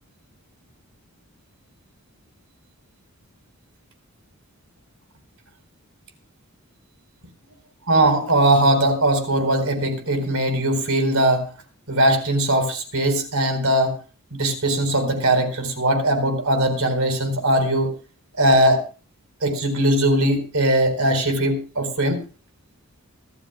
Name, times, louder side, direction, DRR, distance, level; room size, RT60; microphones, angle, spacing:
voice 1, 7.9-11.5 11.9-14.0 14.3-17.9 18.4-18.8 19.4-22.2, right 1 dB, 65° right, 7 dB, 4.3 m, -20 dB
25.0 x 13.0 x 2.3 m, 0.34 s
head